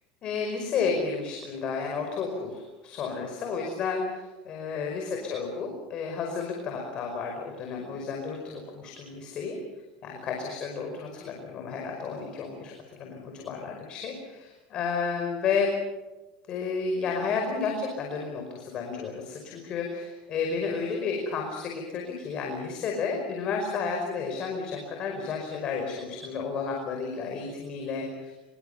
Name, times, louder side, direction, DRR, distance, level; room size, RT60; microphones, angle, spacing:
voice 1, 0.2-9.6 10.0-15.7 16.5-28.3, left 5 dB, 40° left, 2 dB, 5.3 m, -32 dB
25.0 x 23.5 x 6.9 m, 1.1 s
supercardioid pair, 135°, 2 cm